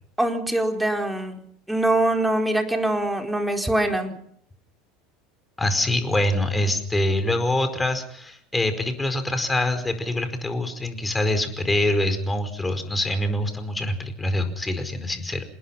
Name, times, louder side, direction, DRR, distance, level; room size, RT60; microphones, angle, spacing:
voice 1, 0.2-1.4 1.7-4.2, right 1 dB, 5° right, 4 dB, 4.6 m, -23 dB
voice 2, 5.6-15.4, left 1 dB, 10° left, 8 dB, 4.9 m, -25 dB
27.5 x 21.0 x 5.8 m, 0.64 s
figure-of-eight pair, 75°, 0 cm